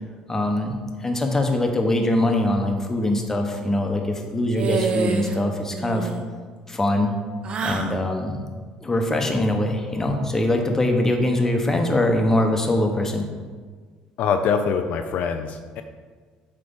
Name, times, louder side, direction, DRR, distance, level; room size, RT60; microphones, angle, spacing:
voice 1, 0.3-6.1 6.7-7.2 7.6-8.4 8.8-13.2, left 1 dB, 15° left, 3 dB, 1.0 m, -22 dB
sound 1, 4.5-5.4 5.7-6.2 7.4-8.0, right 4 dB, 45° right, 0.7 m, -26 dB
voice 2, 14.2-15.8, left 6 dB, 70° left, 6 dB, 0.5 m, -24 dB
7.8 x 3.3 x 5.4 m, 1.5 s
cardioid pair, 100°, 3 cm